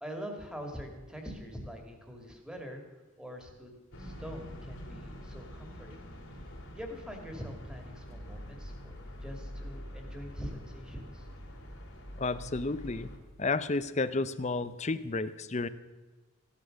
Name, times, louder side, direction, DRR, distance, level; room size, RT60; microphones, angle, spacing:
voice 1, 0.0-3.7 4.0-6.1 6.7-8.9 9.2-11.3, equal, 5° right, 3 dB, 2.1 m, -44 dB
sound 1, 3.9-13.2, equal, 65° left, 2.9 m, -45 dB
voice 2, 12.2-13.1 13.4-15.7, left 3 dB, 35° left, 14 dB, 0.6 m, -31 dB
15.5 x 11.5 x 6.4 m, 1.3 s
head